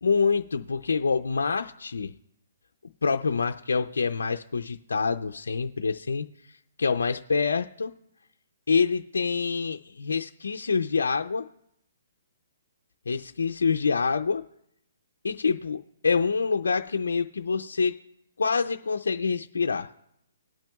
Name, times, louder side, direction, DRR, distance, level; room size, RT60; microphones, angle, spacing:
voice 1, 0.0-2.1 3.0-6.3 6.8-7.9 8.7-11.5 13.1-14.4 15.2-17.9 18.4-19.9, left 5 dB, 90° left, 5 dB, 0.5 m, -26 dB
19.5 x 8.9 x 2.3 m, 0.77 s
hypercardioid pair, 155°, 0 cm